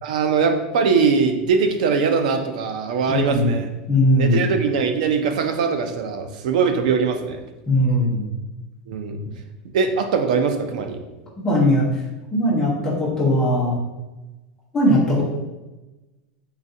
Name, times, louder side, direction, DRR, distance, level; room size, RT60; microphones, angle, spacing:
voice 1, 0.0-3.7 4.2-7.4 8.9-9.2 9.7-11.0, right 5 dB, 70° right, 7 dB, 0.5 m, -21 dB
voice 2, 3.1-3.5 3.9-4.5 7.7-8.2 11.4-12.0 12.3-13.8 14.7-15.2, left 1 dB, 10° left, -6 dB, 0.8 m, -19 dB
3.9 x 3.2 x 2.6 m, 1.1 s
supercardioid pair, 180°, 4 cm